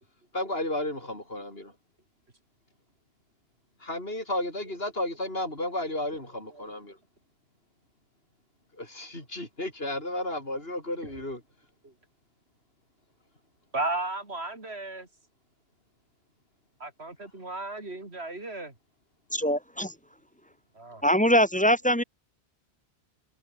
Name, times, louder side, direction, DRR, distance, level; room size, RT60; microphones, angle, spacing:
voice 1, 0.3-1.7 3.8-7.0 8.7-11.4, left 1 dB, 65° left, 6.7 m, -33 dB
voice 2, 13.7-15.1 16.8-18.7 20.7-21.0, right 2 dB, 75° right, 4.4 m, -34 dB
voice 3, 19.3-19.9 21.0-22.0, equal, 5° left, 3.4 m, -22 dB
omnidirectional pair, 1.1 m